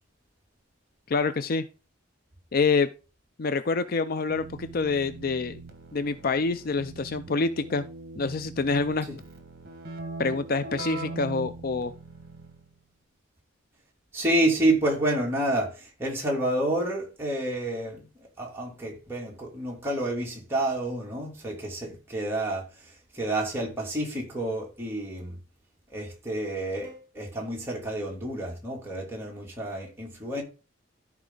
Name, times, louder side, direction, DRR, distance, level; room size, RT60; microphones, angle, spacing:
voice 1, 1.1-1.6 2.5-2.9 3.4-5.6 5.9-7.8 8.2-9.1 10.2-11.9, left 4 dB, 45° left, 0.4 m, -26 dB
Keyboard (musical), 4.3-12.7, right 3 dB, 50° right, 1.8 m, -41 dB
voice 2, 14.1-18.1 18.4-22.7 23.1-25.4 25.9-30.4, right 1 dB, 10° right, 2.8 m, -29 dB
13.5 x 4.8 x 3.8 m
head